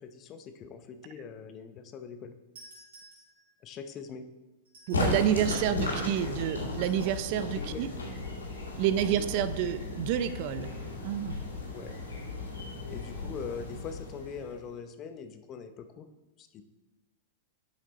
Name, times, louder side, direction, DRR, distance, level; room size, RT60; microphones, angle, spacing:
voice 1, 0.0-2.3 3.6-4.2 5.4-5.8 6.2-6.4 7.5-7.8 9.1-9.4 11.7-11.9 12.9-16.1 16.4-16.6, left 6 dB, 35° left, 8 dB, 0.7 m, -42 dB
sound 1, 2.5-3.7 4.6-5.5 6.7-7.5 9.0-9.4, right 1 dB, 80° right, 2.9 m, -55 dB
sound 2, 4.9-14.7, left 2 dB, 85° left, 2.2 m, -35 dB
voice 2, 4.9-7.9 8.8-10.7 11.0-11.4, right 10 dB, 50° right, 13 dB, 0.4 m, -29 dB
7.3 x 5.9 x 4.1 m, 1.0 s
hypercardioid pair, 100°, 0 cm